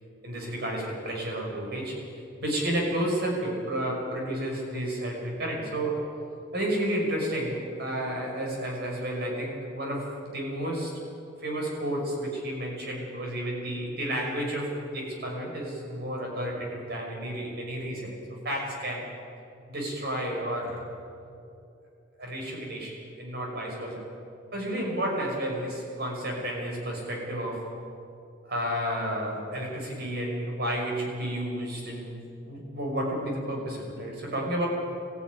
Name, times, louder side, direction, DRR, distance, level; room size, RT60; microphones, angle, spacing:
voice 1, 0.2-2.0 2.4-6.0 6.5-11.0 11.4-18.2 18.4-19.1 19.7-20.8 22.2-24.0 24.5-27.7 28.4-32.1 32.5-34.7, right 1 dB, 55° right, 0 dB, 5.9 m, -31 dB
21.5 x 15.0 x 9.6 m, 2.6 s
head